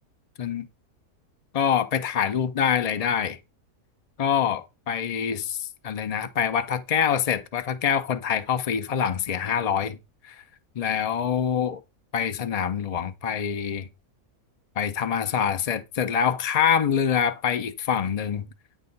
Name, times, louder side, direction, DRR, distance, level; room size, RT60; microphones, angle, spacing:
voice 1, 1.5-3.4 4.2-10.0 10.2-10.4 10.8-11.8 12.1-13.9 14.8-18.5, left 8 dB, 75° left, 0.3 m, -25 dB
8.6 x 6.1 x 3.9 m
omnidirectional pair, 1.6 m